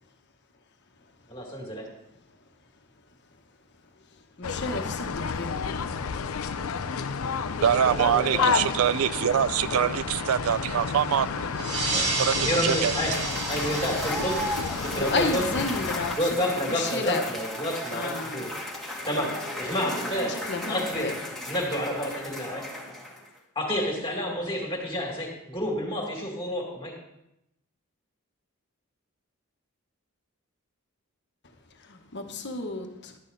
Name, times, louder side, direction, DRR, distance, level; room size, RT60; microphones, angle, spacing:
voice 1, 1.3-1.9 8.0-8.5 12.4-13.1 13.5-14.4 14.7-15.5 16.2-18.5 19.1-19.3 19.6-20.3 20.7-21.1 21.5-22.6 23.6-26.9, equal, 25° left, 2.3 m, -29 dB
sound 1, 4.4-16.2, left 5 dB, 85° left, 0.6 m, -31 dB
voice 2, 4.4-5.6 14.9-16.2 16.4-17.2 17.9-18.5 20.3-21.1 31.9-33.1, left 3 dB, 55° left, 1.2 m, -32 dB
voice 3, 7.6-13.0, right 9 dB, 80° right, 0.4 m, -25 dB
sound 2, 11.5-16.6, right 3 dB, 55° right, 2.3 m, -32 dB
Cheering / Applause / Crowd, 12.9-23.4, left 1 dB, ahead, 1.6 m, -35 dB
11.5 x 8.9 x 4.1 m
head